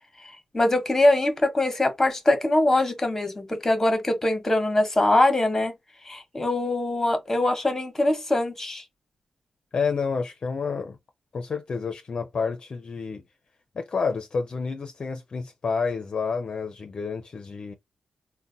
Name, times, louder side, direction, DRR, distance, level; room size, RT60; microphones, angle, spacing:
voice 1, 0.2-5.7 6.1-8.8, left 1 dB, 15° left, 1.0 m, -23 dB
voice 2, 9.7-11.0 11.3-13.2 13.7-17.7, left 5 dB, 45° left, 0.5 m, -29 dB
3.9 x 2.1 x 2.6 m
wide cardioid pair, 145°, 2 cm